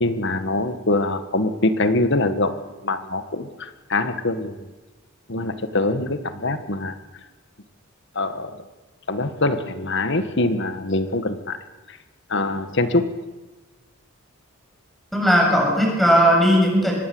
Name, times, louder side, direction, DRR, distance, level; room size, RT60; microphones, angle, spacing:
voice 1, 0.0-2.5 2.8-4.6 5.3-6.9 8.2-8.6 9.1-11.6 12.3-13.1, left 2 dB, 55° left, 10 dB, 1.7 m, -23 dB
voice 2, 15.1-16.9, equal, ahead, -1 dB, 7.3 m, -17 dB
25.0 x 19.5 x 7.9 m, 1.2 s
head